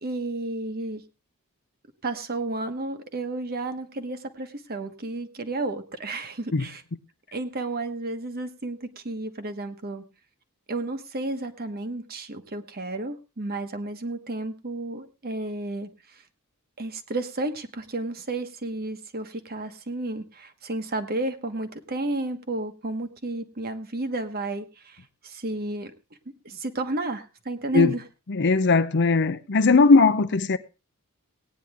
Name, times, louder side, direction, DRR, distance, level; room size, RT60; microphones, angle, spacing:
voice 1, 0.0-1.0 2.0-6.8 7.3-10.0 10.7-16.2 16.8-25.9 26.4-28.0, right 2 dB, 45° right, 1.3 m, -32 dB
voice 2, 28.3-30.6, left 4 dB, 50° left, 0.7 m, -19 dB
18.0 x 9.4 x 3.5 m
head